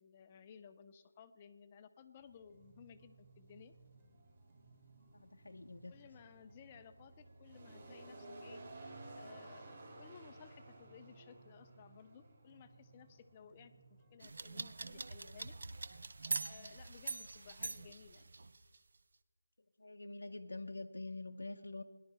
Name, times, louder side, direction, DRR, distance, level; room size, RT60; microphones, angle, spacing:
voice 1, 0.0-3.7 5.9-8.6 9.2-13.7 14.1-15.5 16.5-18.3, left 7 dB, 20° left, 9 dB, 0.4 m, -58 dB
sound 1, 2.2-16.6, right 2 dB, 35° right, 3.4 m, -57 dB
sound 2, 2.5-18.5, right 5 dB, 20° right, 1.1 m, -67 dB
voice 2, 5.1-5.9 19.8-21.8, left 2 dB, 80° left, 3 dB, 0.6 m, -46 dB
sound 3, 14.2-18.8, right 3 dB, 50° right, 0.5 m, -43 dB
17.5 x 11.0 x 4.3 m, 1.4 s
figure-of-eight pair, 170°, 0 cm